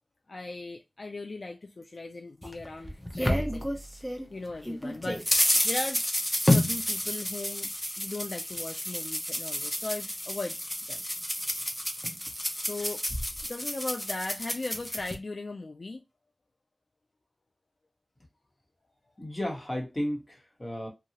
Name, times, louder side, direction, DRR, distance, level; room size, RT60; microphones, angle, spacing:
voice 1, 0.3-3.8 4.3-6.2 6.5-7.7 8.0-10.6 10.9-11.0 12.6-16.0, left 2 dB, 60° left, 0.3 m, -38 dB
sound 1, 2.4-4.3 4.6-15.1, left 1 dB, 10° left, 0.6 m, -30 dB
voice 2, 19.2-20.9, equal, 25° left, 1.2 m, -33 dB
2.8 x 2.3 x 2.8 m
wide cardioid pair, 75°, 0 cm